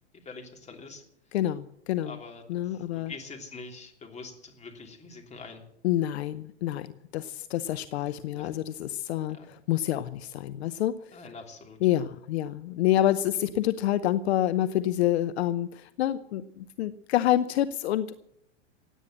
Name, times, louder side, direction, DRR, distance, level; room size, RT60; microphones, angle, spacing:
voice 1, 0.2-1.0 2.0-5.6 8.0-8.6 9.3-9.5 11.1-11.8, left 3 dB, 20° left, 3 dB, 3.1 m, -45 dB
voice 2, 1.3-2.2 2.5-3.1 5.8-11.2 11.8-18.1, left 13 dB, 65° left, 14 dB, 0.8 m, -27 dB
16.5 x 9.3 x 7.9 m, 0.76 s
hypercardioid pair, 105°, 35 cm